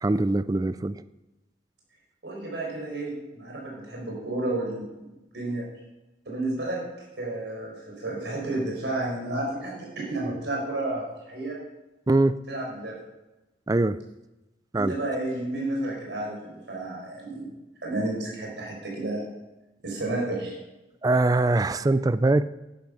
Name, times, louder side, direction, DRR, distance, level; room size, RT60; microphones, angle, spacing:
voice 1, 0.0-1.0 12.1-12.4 13.7-14.0 14.7-15.0 21.0-22.5, right 2 dB, 20° right, 15 dB, 0.3 m, -22 dB
voice 2, 2.2-5.6 6.2-6.8 7.2-11.6 12.5-12.9 14.7-17.5 17.8-19.2 19.8-20.5, right 2 dB, 70° right, -2 dB, 4.8 m, -31 dB
11.0 x 10.5 x 5.7 m, 1.0 s
head